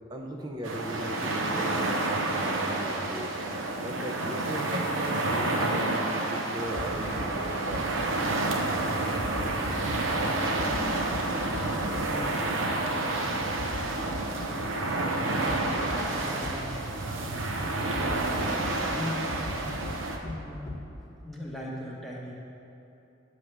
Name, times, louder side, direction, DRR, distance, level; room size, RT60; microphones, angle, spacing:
voice 1, 0.1-3.3 3.8-7.9, right 1 dB, 20° right, 1 dB, 0.5 m, -37 dB
sound 1, 0.6-20.2, right 2 dB, 70° right, 0.6 m, -29 dB
sound 2, 6.7-6.8 7.2-7.3 7.7-7.8 9.2-10.0 10.6-10.8 11.1-11.2 11.5-11.6 11.9-12.0 13.6-13.8 14.1-14.2 15.5-15.6 15.9-16.0 16.4-16.5 17.9-18.7 19.3-19.5 19.8-19.9 20.2-20.3 20.7-20.8, left 2 dB, 20° left, 1.2 m, -37 dB
voice 2, 10.5-14.0 14.4-15.5 15.8-18.4 18.8-19.9 20.2-20.8 21.2-22.3, left 1 dB, ahead, -5 dB, 0.9 m, -41 dB
9.4 x 3.3 x 6.0 m, 2.9 s
head